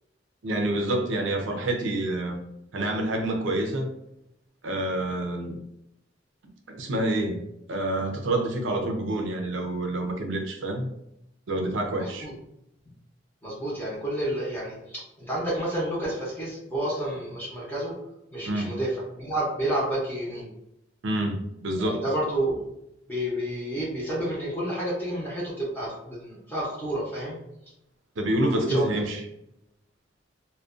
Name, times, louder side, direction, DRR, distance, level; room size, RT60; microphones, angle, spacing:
voice 1, 0.4-2.4 2.7-3.9 4.6-5.6 6.7-7.4 7.7-10.9 11.5-12.3 18.4-18.7 21.0-22.0 28.2-29.2, right 1 dB, 85° right, 3 dB, 0.5 m, -27 dB
voice 2, 12.0-12.3 13.4-17.9 18.3-20.5 21.8-22.6 23.1-27.4 28.7-28.8, right 1 dB, 10° left, -7 dB, 0.7 m, -30 dB
2.4 x 2.2 x 2.4 m, 0.82 s
head